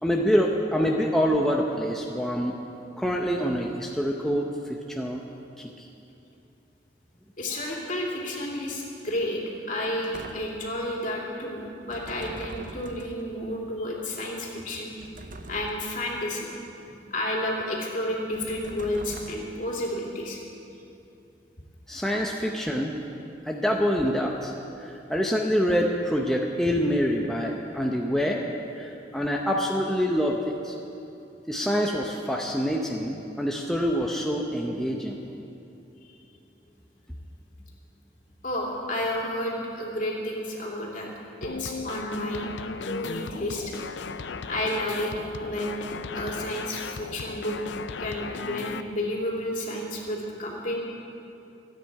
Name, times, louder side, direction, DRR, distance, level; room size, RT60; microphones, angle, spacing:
voice 1, 0.0-2.6 3.0-5.2 5.6-5.9 21.9-23.0 23.4-24.5 24.8-28.4 28.8-30.8 31.5-35.2, equal, 5° left, -1 dB, 0.7 m, -26 dB
voice 2, 7.4-9.4 9.7-14.9 15.5-16.5 17.1-20.4 38.4-41.1 41.4-42.5 42.8-43.7 44.1-44.2 44.4-47.5 48.0-50.8, left 1 dB, 45° left, -2 dB, 2.8 m, -31 dB
sound 1, 10.0-10.7 11.9-13.3 15.0-16.0 18.3-19.7, right 2 dB, 50° right, 0.8 m, -43 dB
sound 2, 41.4-48.8, left 4 dB, 85° left, 0.5 m, -36 dB
25.5 x 9.2 x 4.8 m, 2.8 s
head